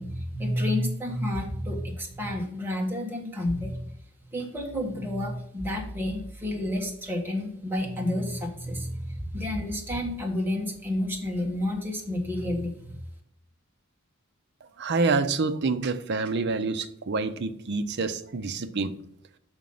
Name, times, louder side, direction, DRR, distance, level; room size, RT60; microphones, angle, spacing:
voice 1, 0.0-3.9 4.3-12.9, left 1 dB, 10° right, -1 dB, 1.6 m, -30 dB
voice 2, 14.8-18.9, right 4 dB, 55° right, 10 dB, 0.6 m, -27 dB
6.2 x 5.1 x 5.4 m, 0.73 s
head